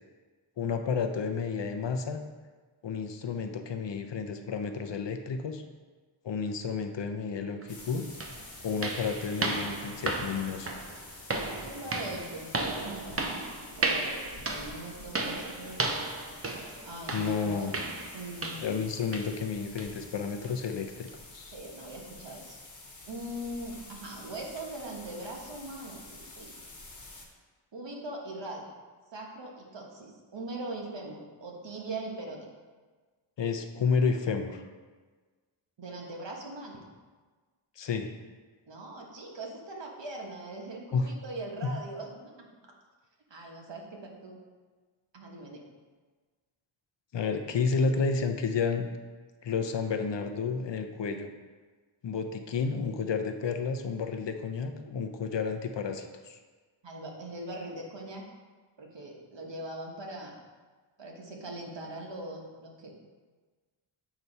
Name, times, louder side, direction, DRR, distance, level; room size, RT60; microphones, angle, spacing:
voice 1, 0.6-2.2 2.8-5.6 6.2-8.0 8.6-10.7 17.1-17.8 18.6-21.5 33.4-34.6 37.8-38.1 40.9-41.1 41.7-41.8 47.1-48.9 49.4-51.3 52.0-56.4, left 5 dB, 60° left, 6 dB, 0.7 m, -31 dB
sound 1, 7.6-7.7 8.2-18.8 19.1-19.4 19.8-20.0 20.4-20.5 21.1-21.2, right 2 dB, 30° right, 0.6 m, -35 dB
sound 2, 7.7-27.3, left 2 dB, 35° left, 1.3 m, -49 dB
voice 2, 11.5-13.4 13.8-15.8 16.8-17.7 18.1-18.6 21.5-22.6 23.1-26.5 27.7-28.6 29.1-32.5 35.8-36.8 38.7-42.5 43.3-44.4 45.1-45.6 56.8-58.3 58.8-60.4 61.0-63.0, right 2 dB, 60° right, 0 dB, 1.4 m, -41 dB
8.0 x 3.0 x 5.4 m, 1.4 s
wide cardioid pair, 85°, 49 cm